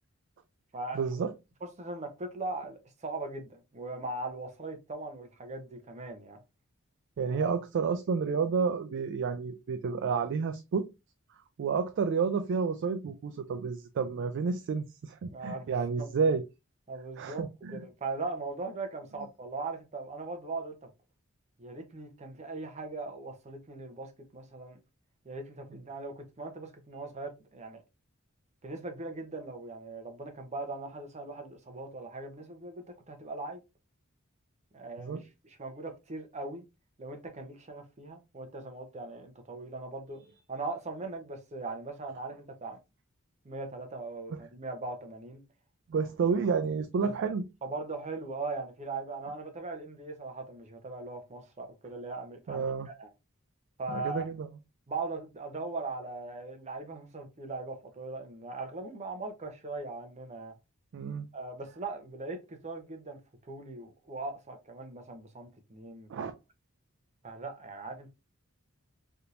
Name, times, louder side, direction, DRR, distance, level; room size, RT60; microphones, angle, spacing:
voice 1, 0.9-1.3 7.2-10.9 11.6-16.4 17.2-17.8 35.0-35.2 44.3-44.4 45.9-47.4 52.5-52.9 53.9-54.5 60.9-61.3 66.1-66.3, right 5 dB, 60° right, 0.3 m, -30 dB
voice 2, 1.6-6.4 7.3-7.5 15.3-16.1 16.9-17.5 17.7-20.9 21.6-24.8 25.2-27.8 28.6-33.6 34.7-35.2 35.4-36.6 37.0-40.2 40.5-42.8 43.4-45.4 47.0-47.2 47.6-52.7 53.0-53.1 53.8-54.3 54.9-60.5 61.3-63.2 63.4-66.3 67.2-68.1, right 3 dB, 35° right, 0.7 m, -39 dB
3.5 x 2.8 x 2.5 m
head